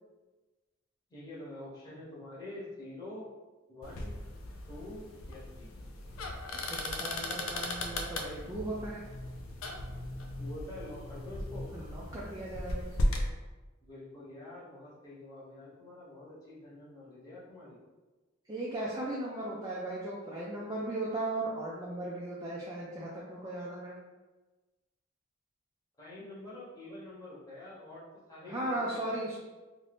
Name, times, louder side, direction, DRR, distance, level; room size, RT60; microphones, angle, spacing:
voice 1, 1.1-3.2 3.7-4.1 4.7-5.7 10.4-11.7 13.8-17.8 26.0-29.2, left 1 dB, 20° left, -9 dB, 1.0 m, -46 dB
sound 1, 3.8-13.3, left 1 dB, 85° left, 0.4 m, -37 dB
voice 2, 6.6-9.0 11.7-13.1 18.5-24.0 28.5-29.4, right 2 dB, 15° right, -6 dB, 0.4 m, -37 dB
2.6 x 2.5 x 3.4 m, 1.2 s
head